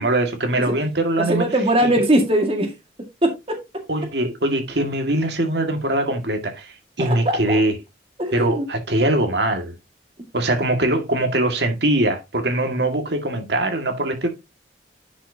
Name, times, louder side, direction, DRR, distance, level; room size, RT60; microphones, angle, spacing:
voice 1, 0.0-1.5 1.8-2.1 3.9-7.7 8.3-9.7 10.3-14.3, right 1 dB, 70° right, 2.0 m, -22 dB
voice 2, 1.3-2.7 3.2-3.6 7.0-7.6 8.2-8.6, right 1 dB, 30° right, 2.0 m, -20 dB
10.5 x 6.3 x 2.8 m
head